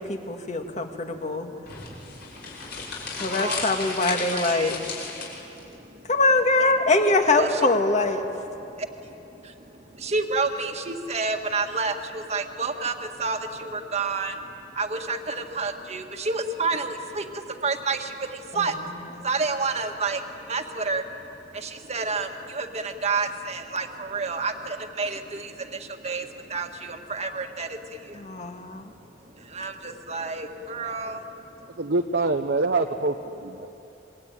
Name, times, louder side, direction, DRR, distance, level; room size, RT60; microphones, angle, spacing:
voice 1, 0.0-1.5 3.2-4.7 6.1-8.2 18.5-18.7 28.1-28.9, left 2 dB, 40° left, 5 dB, 1.9 m, -23 dB
sound 1, 1.6-5.6, left 4 dB, 60° left, 6.3 m, -34 dB
voice 2, 3.3-3.7 4.3-4.7 7.4-7.6 10.0-12.9 13.2-14.3 14.8-17.3 17.6-18.1 18.6-18.7 19.2-20.2 20.5-21.0 21.6-22.3 22.5-25.5 26.0-26.2 26.5-27.7 29.5-31.2, right 4 dB, 35° right, 5 dB, 1.7 m, -29 dB
voice 3, 31.8-33.7, right 3 dB, 65° right, 3 dB, 0.9 m, -25 dB
26.5 x 22.0 x 9.2 m, 2.9 s
head